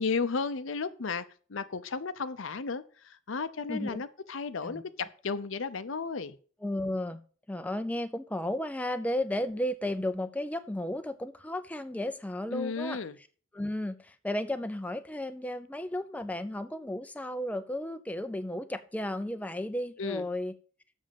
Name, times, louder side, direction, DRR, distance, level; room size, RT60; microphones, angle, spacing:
voice 1, 0.0-6.4 12.5-13.1 20.0-20.3, left 4 dB, 65° left, 13 dB, 0.7 m, -34 dB
voice 2, 3.7-4.0 4.6-4.8 6.6-7.2 7.5-13.0 13.5-20.5, left 1 dB, 5° left, 9 dB, 0.5 m, -34 dB
7.5 x 6.3 x 7.1 m, 0.42 s
head